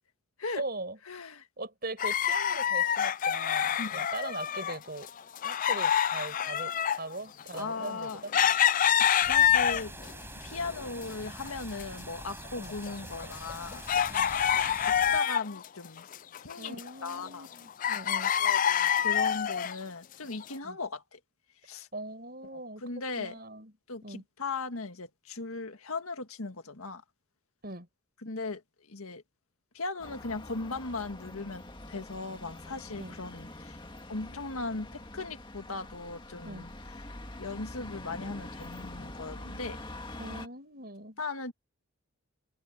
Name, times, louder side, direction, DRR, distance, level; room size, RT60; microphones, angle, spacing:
voice 1, 0.5-1.0 1.6-5.1 5.4-8.3 12.6-12.7 14.1-14.3 16.6-18.3 20.6-20.8 21.9-22.8 23.2-23.7 24.0-24.2 27.6-27.9 33.0-33.2 36.4-36.7 40.2-41.2, right 2 dB, 45° right, 6.9 m, -40 dB
voice 2, 1.1-1.5 3.8-4.0 7.6-8.2 8.6-9.9 10.4-13.8 14.6-16.1 16.4-16.8 17.0-17.5 18.2-21.2 21.6-21.9 22.4-23.3 23.9-27.0 28.2-28.6 28.9-29.2 29.7-33.8 34.1-36.7 37.4-39.8 41.2-41.5, left 3 dB, 75° left, 1.8 m, -38 dB
sound 1, 2.0-4.8 5.0-10.1 10.6-11.5 11.7-11.8 12.4-15.7 16.0-17.5 17.8-19.8 20.4-20.5, left 9 dB, 35° left, 0.3 m, -27 dB
sound 2, 9.2-15.2, right 1 dB, 10° right, 7.3 m, -45 dB
sound 3, 30.0-40.5, left 1 dB, 20° left, 2.0 m, -45 dB
head